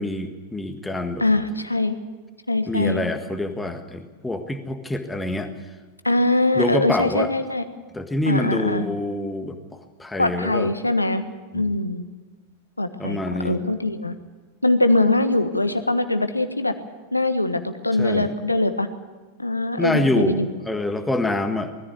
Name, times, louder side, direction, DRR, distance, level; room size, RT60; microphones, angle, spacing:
voice 1, 0.0-1.2 2.7-5.5 6.6-7.3 7.9-10.7 11.5-11.7 13.0-13.6 18.0-18.3 19.8-21.7, left 2 dB, 10° left, 6 dB, 1.7 m, -26 dB
voice 2, 1.2-1.9 2.5-3.0 6.0-7.6 8.3-8.9 10.2-11.2 11.5-12.0 12.8-13.2 13.4-14.1 14.6-16.7 17.1-18.9 19.4-20.5, left 2 dB, 85° left, 9 dB, 1.4 m, -22 dB
20.0 x 14.0 x 9.6 m, 1.4 s
figure-of-eight pair, 90°, 0 cm